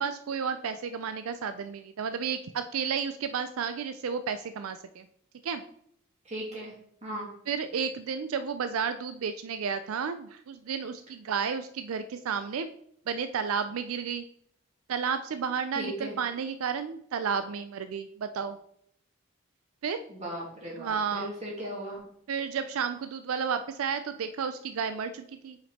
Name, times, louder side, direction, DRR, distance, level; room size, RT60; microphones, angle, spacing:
voice 1, 0.0-5.1 5.4-5.6 7.5-12.7 13.1-14.3 14.9-18.6 19.8-20.0 20.8-21.3 22.3-25.6, right 6 dB, 90° right, 10 dB, 0.4 m, -32 dB
voice 2, 6.2-6.7 7.0-7.3 15.8-16.1 20.1-22.0, equal, 35° right, -4 dB, 2.3 m, -37 dB
5.6 x 5.1 x 4.2 m, 0.68 s
head